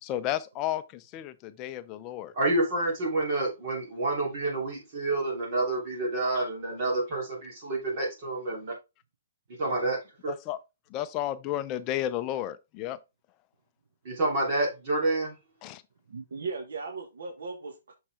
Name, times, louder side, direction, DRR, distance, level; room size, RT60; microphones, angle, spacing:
voice 1, 0.0-2.3 10.3-10.6 10.9-13.0 15.6-15.8, left 12 dB, 20° left, 0.5 m, -32 dB
voice 2, 2.3-8.7 9.6-10.3 14.0-15.4, right 2 dB, 35° right, 3.1 m, -28 dB
voice 3, 16.1-17.9, right 4 dB, 85° right, 1.5 m, -37 dB
6.5 x 5.8 x 3.5 m
hypercardioid pair, 170°, 0 cm